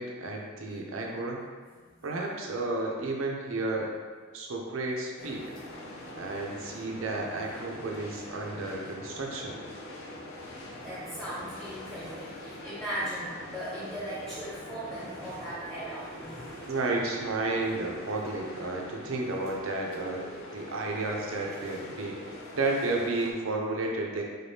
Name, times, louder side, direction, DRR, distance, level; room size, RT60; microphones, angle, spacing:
voice 1, 0.0-1.4 2.0-3.9 4.3-5.5 6.1-9.6 16.7-24.2, right 2 dB, 80° right, -1 dB, 0.6 m, -32 dB
sound 1, 5.2-23.3, left 1 dB, 80° left, 0.6 m, -43 dB
voice 2, 10.8-16.7, right 1 dB, ahead, -13 dB, 1.0 m, -38 dB
4.1 x 3.4 x 2.8 m, 1.5 s
head